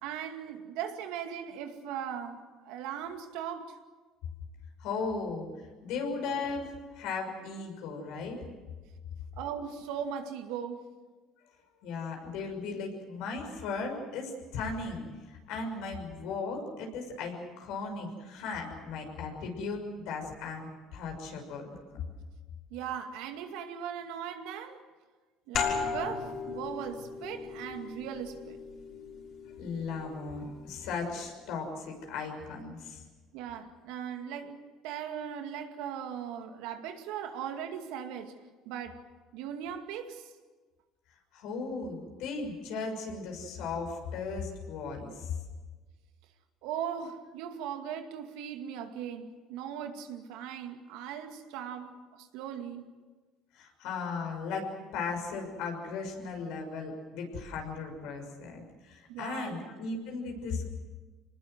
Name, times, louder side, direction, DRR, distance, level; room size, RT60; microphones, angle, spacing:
voice 1, 0.0-3.8 9.4-10.8 22.7-24.8 25.5-28.6 33.3-38.3 38.6-39.0 39.3-40.3 46.6-52.9 59.1-59.7, right 8 dB, 80° right, 5 dB, 2.3 m, -39 dB
voice 2, 4.8-5.5 5.8-6.7 6.9-8.4 11.8-19.8 20.0-21.7 21.9-22.0 29.6-33.0 41.3-45.3 53.5-60.8, left 4 dB, 75° left, 3 dB, 6.3 m, -36 dB
sound 1, 25.5-30.8, left 5 dB, 55° left, 6.5 m, -37 dB
25.5 x 20.0 x 7.9 m, 1.3 s
supercardioid pair, 80°, 0 cm